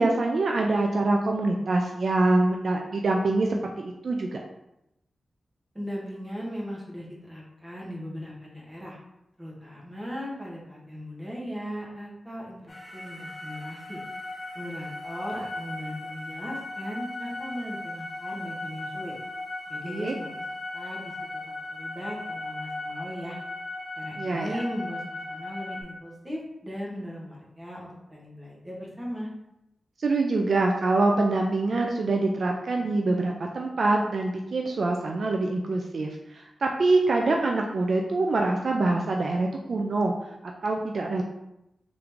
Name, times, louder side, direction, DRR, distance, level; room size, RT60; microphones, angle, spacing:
voice 1, 0.0-3.5 3.8-4.4 19.9-20.1 24.2-24.6 30.0-40.1 40.4-41.2, right 2 dB, 55° right, 1 dB, 0.3 m, -25 dB
voice 2, 5.7-9.0 9.4-14.0 14.5-19.1 19.7-20.3 20.7-23.4 24.0-29.3, equal, 15° right, -4 dB, 1.1 m, -38 dB
sound 1, 12.7-25.8, left 2 dB, 25° left, 0.7 m, -37 dB
3.7 x 3.1 x 3.4 m, 0.87 s
wide cardioid pair, 120°, 0 cm